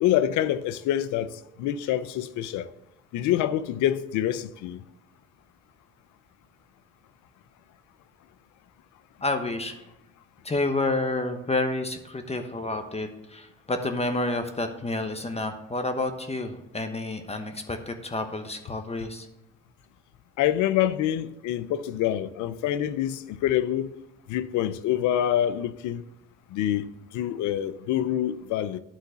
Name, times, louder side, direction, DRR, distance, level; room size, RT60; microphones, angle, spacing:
voice 1, 0.0-2.7 3.1-4.8 20.4-23.9 24.3-26.1 26.5-26.9 27.1-28.8, left 11 dB, 75° left, 0.6 m, -26 dB
voice 2, 9.2-9.8 10.4-19.3, left 2 dB, 20° left, 1.1 m, -29 dB
10.5 x 3.9 x 6.8 m
supercardioid pair, 60°, 30 cm